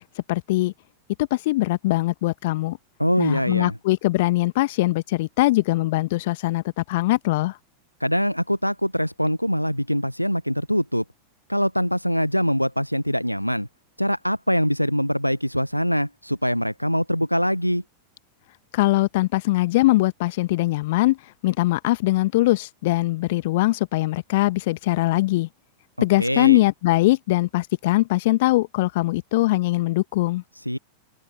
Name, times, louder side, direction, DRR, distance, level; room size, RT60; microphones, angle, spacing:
voice 1, 0.3-0.7 1.2-2.8 3.2-7.5 18.7-21.2 21.4-25.5 26.0-30.4, left 19 dB, 50° left, 1.4 m, -21 dB
voice 2, 3.0-3.7 8.0-11.0 11.5-13.7 14.0-17.8 26.0-26.6 30.7-30.8, equal, 90° left, 0.8 m, -23 dB
open air
figure-of-eight pair, 90°, 0 cm